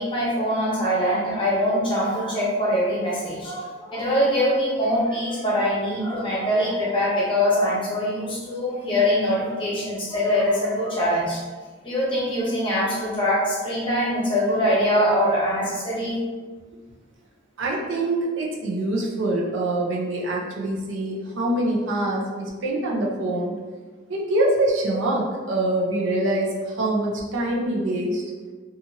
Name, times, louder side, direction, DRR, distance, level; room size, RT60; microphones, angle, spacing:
voice 1, 0.0-11.4 11.8-16.2, equal, 25° left, -6 dB, 0.9 m, -23 dB
voice 2, 17.6-23.5 24.1-28.2, right 1 dB, 70° right, -2 dB, 0.6 m, -24 dB
2.8 x 2.4 x 2.8 m, 1.4 s
head